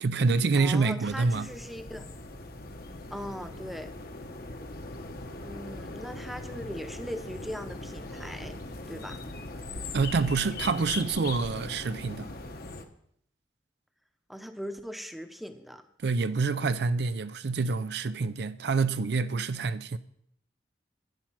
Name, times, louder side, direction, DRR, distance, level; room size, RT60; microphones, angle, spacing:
voice 1, 0.0-1.5 9.9-12.3 16.0-20.0, right 4 dB, 60° right, 0.5 m, -27 dB
voice 2, 0.6-2.0 3.1-3.9 5.4-8.6 8.9-9.2 14.3-15.8, equal, ahead, 0.8 m, -39 dB
sound 1, 1.1-12.8, left 2 dB, 55° left, 1.1 m, -40 dB
10.5 x 10.5 x 5.8 m
head